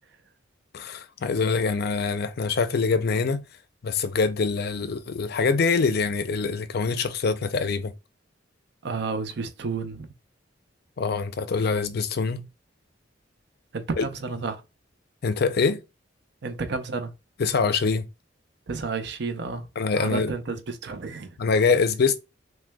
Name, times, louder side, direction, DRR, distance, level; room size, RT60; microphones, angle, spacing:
voice 1, 0.7-3.5 3.8-7.9 11.0-12.5 14.0-14.1 15.2-15.8 17.4-18.1 19.8-20.3 21.4-22.2, left 4 dB, 55° left, 0.5 m, -24 dB
voice 2, 8.8-10.1 13.7-14.6 16.4-17.1 18.7-19.7 19.9-21.3, right 4 dB, 60° right, 0.6 m, -31 dB
6.0 x 2.2 x 2.2 m
head